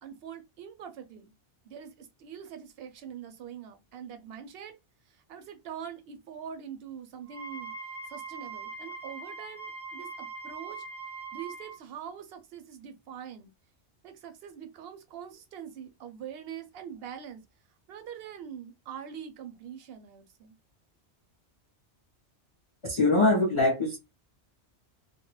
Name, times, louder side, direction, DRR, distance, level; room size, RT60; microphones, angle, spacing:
voice 1, 0.0-1.3 1.6-4.8 5.1-7.7 8.1-10.8 11.3-13.5 14.0-17.4 17.9-20.5, right 8 dB, 65° right, 0.7 m, -43 dB
Wind instrument woodwind instrument, 7.2-11.7, right 4 dB, 20° left, 0.8 m, -41 dB
voice 2, 22.8-24.0, left 2 dB, 45° left, 0.4 m, -23 dB
2.2 x 2.0 x 3.0 m
omnidirectional pair, 1.2 m